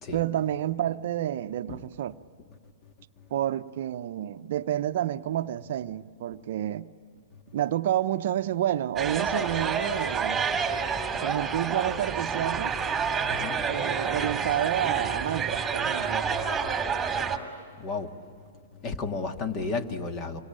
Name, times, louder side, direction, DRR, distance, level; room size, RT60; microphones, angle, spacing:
voice 1, 0.1-2.2 3.3-6.9 7.5-10.4 11.2-12.8 13.7-16.3, right 12 dB, 60° right, 0.7 m, -29 dB
sound 1, 9.0-17.4, right 6 dB, 10° right, 2.7 m, -29 dB
voice 2, 13.3-13.6 17.8-18.1 18.8-20.4, left 4 dB, 30° left, 1.9 m, -32 dB
27.5 x 24.0 x 9.0 m
hypercardioid pair, 120°, 0 cm